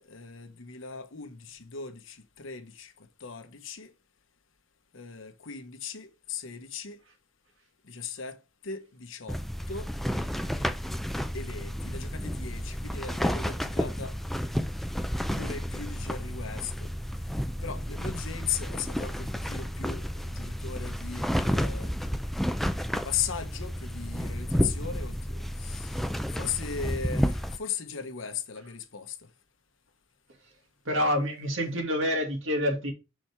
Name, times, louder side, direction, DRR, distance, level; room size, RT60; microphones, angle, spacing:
voice 1, 0.0-3.9 4.9-7.0 7.8-9.4 9.7-9.9 11.3-14.2 15.3-16.9 17.6-22.2 22.9-29.3, left 7 dB, 75° left, 1.1 m, -38 dB
sound 1, 9.3-27.6, equal, ahead, 0.4 m, -31 dB
voice 2, 30.8-32.9, equal, 70° right, 2.2 m, -27 dB
6.4 x 4.4 x 4.6 m
head